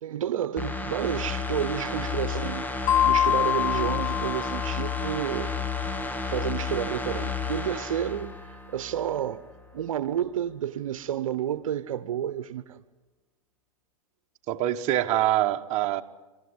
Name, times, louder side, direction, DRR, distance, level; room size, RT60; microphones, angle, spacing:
voice 1, 0.0-5.5 6.2-9.4 9.7-12.8, right 10 dB, 80° right, 1.0 m, -30 dB
sound 1, 0.6-9.2 9.6-9.7, left 5 dB, 10° left, 1.2 m, -32 dB
sound 2, 2.9-5.4, left 10 dB, 40° left, 2.3 m, -25 dB
voice 2, 14.5-16.0, right 13 dB, 40° right, 1.2 m, -24 dB
28.5 x 14.0 x 9.7 m
hypercardioid pair, 115°, 17 cm